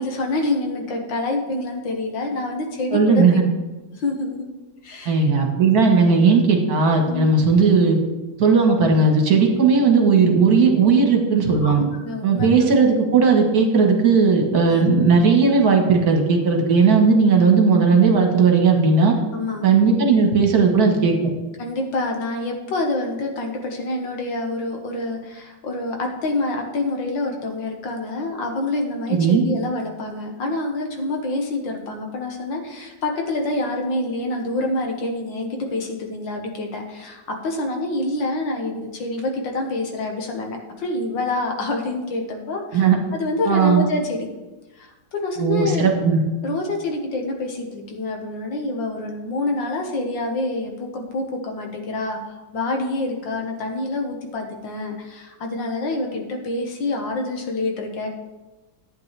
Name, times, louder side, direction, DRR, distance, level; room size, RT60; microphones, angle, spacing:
voice 1, 0.0-3.2 3.9-4.5 4.8-5.3 7.1-7.3 11.6-12.7 14.7-15.0 19.3-19.6 21.6-44.3 44.8-45.9 46.4-52.2 52.5-58.1, left 2 dB, 85° left, 2 dB, 2.0 m, -27 dB
voice 2, 2.9-3.4 5.1-8.0 8.4-11.8 12.2-19.1 19.6-21.1 29.1-29.4 42.7-43.0 43.5-43.8 45.4-46.2, right 5 dB, 55° right, 2 dB, 1.7 m, -16 dB
11.5 x 8.8 x 3.3 m, 1.1 s
omnidirectional pair, 2.0 m